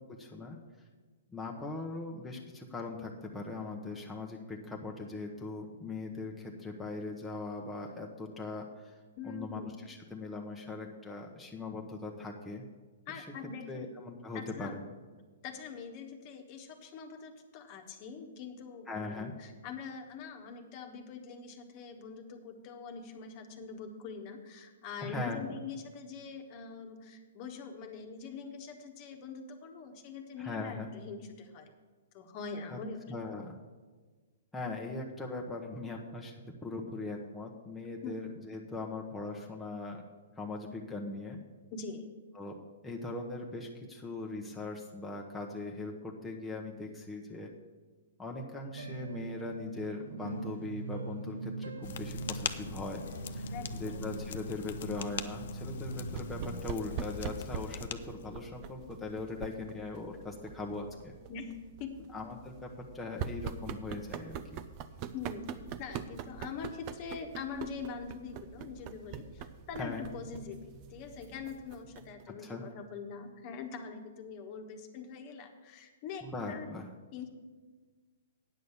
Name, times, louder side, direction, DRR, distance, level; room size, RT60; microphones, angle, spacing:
voice 1, 0.1-0.6 1.3-9.0 9.2-12.6 13.1-13.3 13.7-14.8 18.9-19.3 25.0-25.6 30.4-30.9 32.7-32.8 33.1-33.6 34.5-36.4 36.6-40.0 40.3-41.4 42.3-47.5 48.2-53.0 53.3-61.1 62.1-64.6 69.8-70.1 72.3-72.6 76.2-76.9, left 3 dB, 5° left, -2 dB, 1.0 m, -40 dB
voice 2, 9.2-9.7 13.1-13.9 14.3-14.8 15.4-31.7 32.1-33.0 38.0-38.2 41.7-42.1 53.5-54.0 61.3-62.1 65.1-65.5 65.8-76.8 77.1-77.3, left 5 dB, 40° left, 5 dB, 1.3 m, -43 dB
sound 1, 48.7-56.6, right 3 dB, 80° right, 0.8 m, -42 dB
sound 2, 51.8-58.3, left 8 dB, 60° left, 0.6 m, -42 dB
sound 3, 56.1-72.2, right 7 dB, 40° right, 0.6 m, -44 dB
9.5 x 6.5 x 7.1 m, 1.4 s
hypercardioid pair, 125°, 0 cm